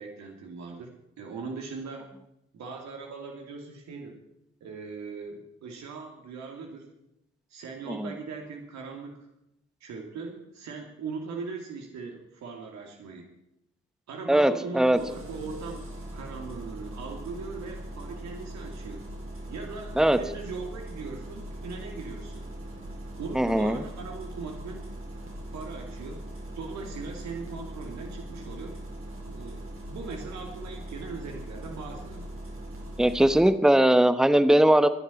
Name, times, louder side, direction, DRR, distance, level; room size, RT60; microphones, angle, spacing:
voice 1, 0.0-2.1 2.5-4.2 4.6-6.9 7.5-9.3 9.8-13.3 14.1-15.8 16.1-19.0 19.5-22.5 23.2-24.8 25.5-26.2 26.6-28.8 29.3-32.3, right 4 dB, 60° right, 2 dB, 2.5 m, -40 dB
voice 2, 14.3-15.0 20.0-20.2 23.3-23.8 33.0-34.9, right 1 dB, ahead, 11 dB, 1.1 m, -20 dB
Engine starting, 14.9-33.5, right 1 dB, 45° right, 4.5 m, -40 dB
25.5 x 10.5 x 4.2 m, 0.83 s
figure-of-eight pair, 40°, 31 cm